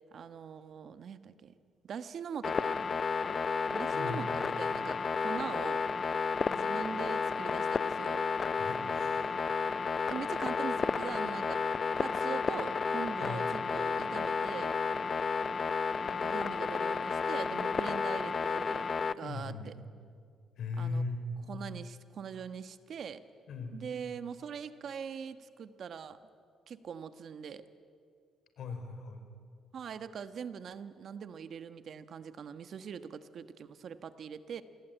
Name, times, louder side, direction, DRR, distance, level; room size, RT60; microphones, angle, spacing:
voice 1, 0.1-1.5 1.8-2.9 3.7-5.8 6.5-8.3 10.1-14.7 16.0-19.7 20.8-21.0 21.5-23.2 23.7-26.2 26.7-27.6 29.7-34.6, right 7 dB, 60° right, 11 dB, 1.2 m, -42 dB
sound 1, 2.4-19.1, left 5 dB, 40° left, 0.5 m, -32 dB
voice 2, 3.9-4.2 8.6-9.3 13.2-13.4 19.2-19.7 20.6-21.2 23.5-23.8 28.6-29.2, left 4 dB, 70° left, 7 dB, 4.5 m, -38 dB
27.0 x 19.5 x 9.1 m, 2.3 s
cardioid pair, 90°, 0 cm